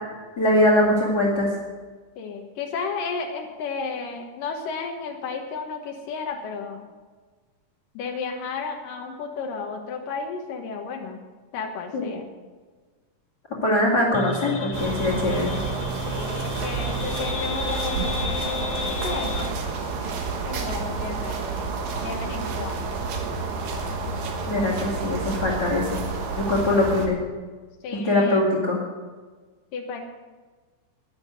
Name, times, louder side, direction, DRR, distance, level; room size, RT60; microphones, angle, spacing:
voice 1, 0.4-1.5 11.9-12.1 13.6-15.6 24.5-26.0 26.4-27.2 28.0-28.8, left 1 dB, 35° left, -2 dB, 2.5 m, -22 dB
voice 2, 2.2-6.9 7.9-11.2 11.5-12.2 15.1-19.6 20.5-21.4 22.0-23.0 27.8-28.4 29.7-30.0, left 5 dB, 90° left, 2 dB, 2.9 m, -33 dB
sound 1, 14.1-19.6, left 3 dB, 60° left, 3.2 m, -32 dB
sound 2, 14.7-27.1, right 4 dB, 80° right, 3.2 m, -29 dB
11.5 x 10.5 x 8.0 m, 1.4 s
omnidirectional pair, 3.8 m